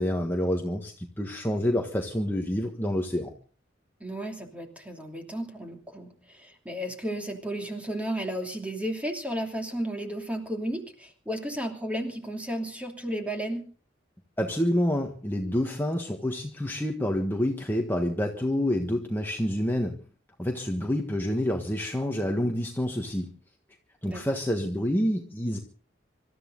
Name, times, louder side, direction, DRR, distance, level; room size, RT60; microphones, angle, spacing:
voice 1, 0.0-3.3 14.4-19.9 20.4-23.3 24.0-25.6, left 1 dB, 10° left, 2 dB, 1.4 m, -28 dB
voice 2, 4.0-13.6 24.1-24.2, right 1 dB, 5° right, 3 dB, 2.9 m, -33 dB
26.0 x 13.5 x 3.9 m, 0.39 s
head